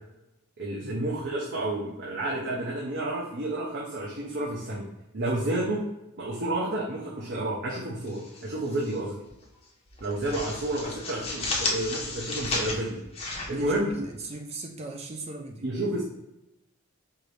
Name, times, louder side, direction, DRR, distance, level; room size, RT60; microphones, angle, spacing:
voice 1, 0.6-4.9 5.1-5.8 6.2-9.2 10.0-13.0 13.5-13.9 15.6-16.0, right 1 dB, 50° right, -4 dB, 0.7 m, -30 dB
sound 1, 8.1-9.0 9.3-9.5 9.9-14.3, left 2 dB, 25° left, 0.7 m, -33 dB
voice 2, 13.5-15.7, right 3 dB, 30° right, 3 dB, 0.4 m, -39 dB
4.7 x 2.6 x 3.2 m, 0.90 s
head